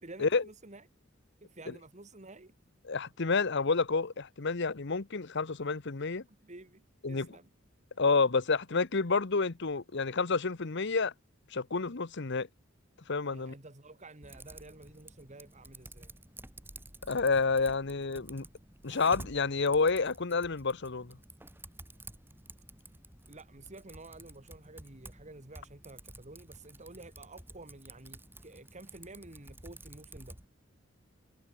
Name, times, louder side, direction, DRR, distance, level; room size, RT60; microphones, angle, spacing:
voice 1, 0.0-0.9 1.4-2.5 6.4-7.5 13.3-16.1 23.3-30.4, right 2 dB, 35° right, 2.2 m, -51 dB
voice 2, 2.9-6.2 7.0-7.3 8.0-11.1 11.5-12.5 13.1-13.5 17.1-18.5 18.8-21.2, left 4 dB, 60° left, 1.1 m, -29 dB
Typing, 14.2-30.5, right 1 dB, 10° right, 4.0 m, -51 dB
head